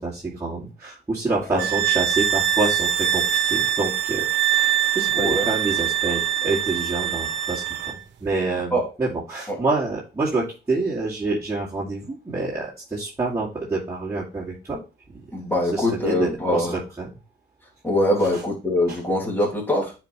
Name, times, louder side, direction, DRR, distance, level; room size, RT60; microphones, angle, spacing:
voice 1, 0.0-4.3 4.5-14.8 15.1-15.2 15.7-17.1 18.3-18.4 18.9-19.0, right 3 dB, 15° right, -8 dB, 2.3 m, -27 dB
sound 1, 1.6-8.0, right 10 dB, 65° right, 0.9 m, -23 dB
voice 2, 5.1-5.5 8.7-8.9 9.5-9.6 15.3-16.8 17.8-19.9, left 1 dB, 10° left, -1 dB, 2.7 m, -23 dB
8.9 x 4.5 x 3.1 m, 0.30 s
cardioid pair, 90°, 20 cm